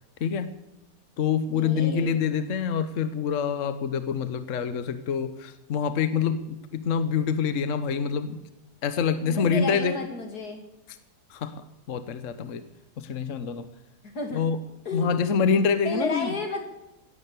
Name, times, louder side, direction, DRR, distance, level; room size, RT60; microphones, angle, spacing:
voice 1, 0.2-0.5 1.2-8.4 8.8-9.9 11.3-12.6 13.0-13.6 14.3-14.6 14.9-16.3, left 6 dB, 55° left, 11 dB, 1.3 m, -26 dB
voice 2, 1.5-2.2 9.1-10.6 14.0-14.4 14.8-15.1 15.8-16.6, left 2 dB, 75° left, 3 dB, 3.3 m, -32 dB
16.5 x 10.5 x 8.3 m, 0.95 s
omnidirectional pair, 1.7 m